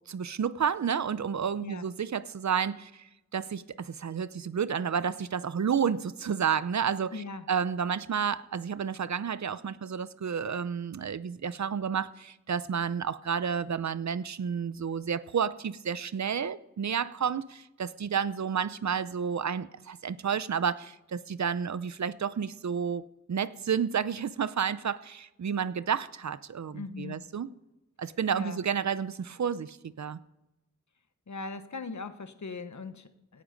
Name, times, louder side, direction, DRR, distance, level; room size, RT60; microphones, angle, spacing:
voice 1, 0.1-3.0 3.3-23.0 23.3-27.5 28.0-30.2, right 7 dB, 65° right, 16 dB, 0.7 m, -31 dB
voice 2, 7.1-7.5 26.7-27.2 28.3-28.6 31.3-33.4, left 4 dB, 70° left, 10 dB, 1.3 m, -40 dB
17.5 x 12.0 x 5.2 m, 0.97 s
wide cardioid pair, 65°, 30 cm